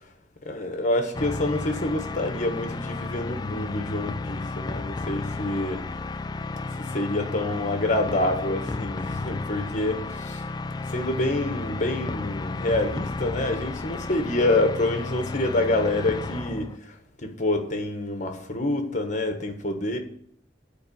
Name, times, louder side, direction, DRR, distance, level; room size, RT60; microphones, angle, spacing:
voice 1, 0.4-5.8 6.8-10.4 10.8-20.0, left 2 dB, 45° left, 1.3 m, -27 dB
sound 1, 1.1-16.8, left 3 dB, 25° left, 0.4 m, -33 dB
10.5 x 4.8 x 6.9 m
head